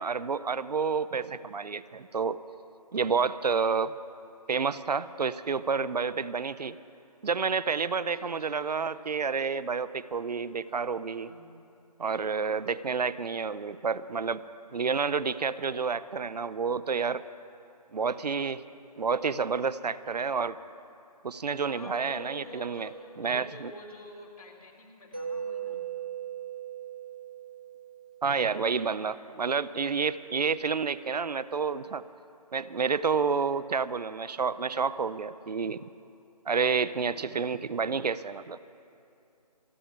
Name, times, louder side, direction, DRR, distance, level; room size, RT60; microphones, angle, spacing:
voice 1, 0.0-2.4 2.9-3.9 4.5-6.8 7.2-11.3 12.0-14.4 14.7-17.2 17.9-18.6 19.0-20.6 21.2-22.9 23.2-23.7 28.2-32.0 32.5-35.9 36.5-38.6, right 5 dB, 75° right, 15 dB, 0.5 m, -29 dB
voice 2, 7.9-8.9 11.2-11.6 21.7-25.8 37.0-37.4, left 1 dB, 60° left, 0 dB, 3.0 m, -48 dB
Mallet percussion, 25.1-28.9, right 8 dB, 15° right, 0.4 m, -39 dB
29.0 x 11.0 x 3.7 m, 2.7 s
figure-of-eight pair, 160°, 21 cm